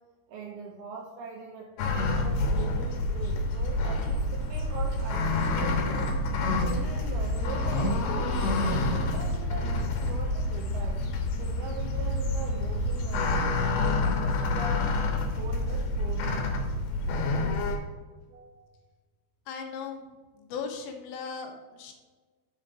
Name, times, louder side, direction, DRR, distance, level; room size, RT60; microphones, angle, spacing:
voice 1, 0.3-6.2 6.6-8.0 8.8-11.0 11.4-16.5 18.3-18.7, right 4 dB, 85° right, 0 dB, 2.2 m, -42 dB
sound 1, 1.8-17.8, left 2 dB, 65° left, 2.7 m, -28 dB
voice 2, 19.5-20.1 20.3-21.9, left 6 dB, 85° left, 2 dB, 3.6 m, -37 dB
7.5 x 5.1 x 6.4 m, 1.3 s
omnidirectional pair, 5.6 m